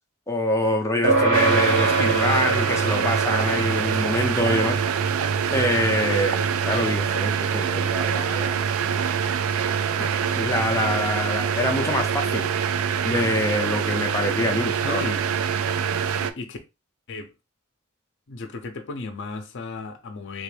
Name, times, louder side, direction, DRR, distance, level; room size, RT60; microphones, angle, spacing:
voice 1, 0.3-4.8 5.5-8.7 10.0-10.1 10.4-12.5 13.0-15.0, left 1 dB, 15° left, 0.5 m, -25 dB
sound 1, 1.0-10.7, right 3 dB, 55° right, 1.3 m, -27 dB
sound 2, 1.3-16.3, right 7 dB, 70° right, 0.3 m, -25 dB
voice 2, 14.8-15.2 16.1-16.6 17.1-17.3 18.3-20.4, left 3 dB, 55° left, 0.6 m, -34 dB
3.4 x 2.5 x 3.3 m
head